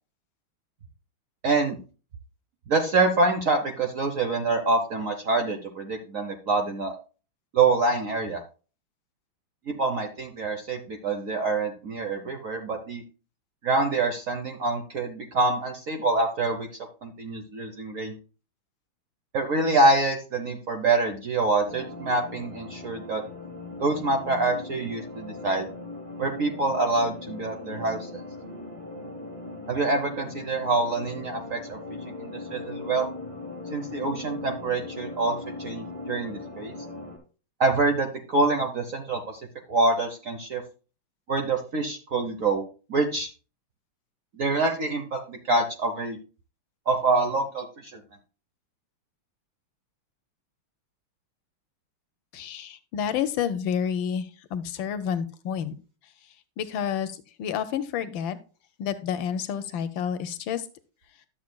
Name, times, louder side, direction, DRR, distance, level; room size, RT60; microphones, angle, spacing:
voice 1, 1.4-1.8 2.7-7.0 7.5-8.4 9.7-13.0 13.6-16.7 17.0-18.2 19.3-23.2 23.8-25.7 26.2-28.2 29.7-31.8 32.1-33.1 33.7-36.7 37.6-39.4 39.7-40.6 41.3-43.3 44.4-46.2 46.9-48.0, right 3 dB, 55° right, 5 dB, 0.9 m, -26 dB
sound 1, 21.6-37.2, left 2 dB, 15° right, 2.2 m, -39 dB
voice 2, 52.3-55.7 56.6-58.4 58.8-60.7, left 8 dB, 75° left, 11 dB, 1.3 m, -29 dB
11.5 x 7.3 x 2.2 m, 0.35 s
omnidirectional pair, 2.3 m